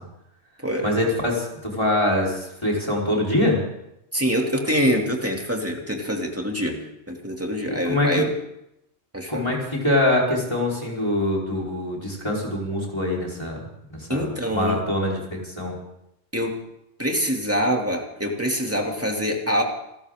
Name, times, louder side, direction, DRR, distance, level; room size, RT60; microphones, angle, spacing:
voice 1, 0.8-3.6 7.7-8.3 9.3-13.6 13.9-15.7, left 1 dB, 25° left, -3 dB, 4.4 m, -24 dB
voice 2, 4.1-6.8 7.1-8.3 9.1-9.4 14.1-14.8 16.3-16.6 17.0-19.6, equal, 10° right, 1 dB, 2.6 m, -25 dB
28.5 x 13.5 x 3.7 m, 0.82 s
omnidirectional pair, 1.1 m